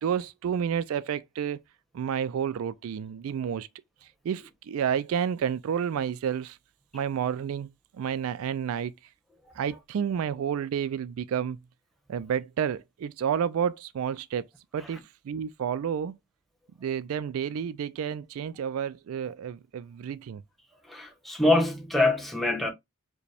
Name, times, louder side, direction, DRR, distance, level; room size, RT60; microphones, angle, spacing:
voice 1, 0.0-1.6 1.9-3.7 4.0-6.6 6.9-8.9 9.5-11.6 12.1-14.5 14.7-16.2 16.8-20.4, right 8 dB, 75° right, 0.3 m, -30 dB
voice 2, 20.9-22.7, left 2 dB, ahead, 1.0 m, -24 dB
4.9 x 2.2 x 3.3 m
head